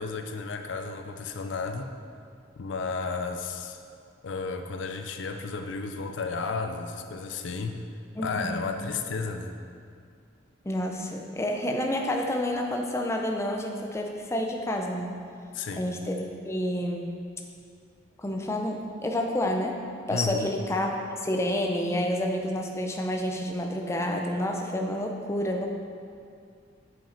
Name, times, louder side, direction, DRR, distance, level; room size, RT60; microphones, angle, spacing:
voice 1, 0.0-1.9 2.6-3.8 4.2-7.8 8.2-9.5 15.5-15.9 20.1-20.5, left 4 dB, 70° left, 6 dB, 0.5 m, -33 dB
voice 2, 8.2-8.6 10.6-15.2 15.8-17.1 18.2-19.8 20.1-25.7, left 1 dB, 15° left, 2 dB, 0.5 m, -29 dB
7.4 x 5.9 x 4.3 m, 2.4 s
head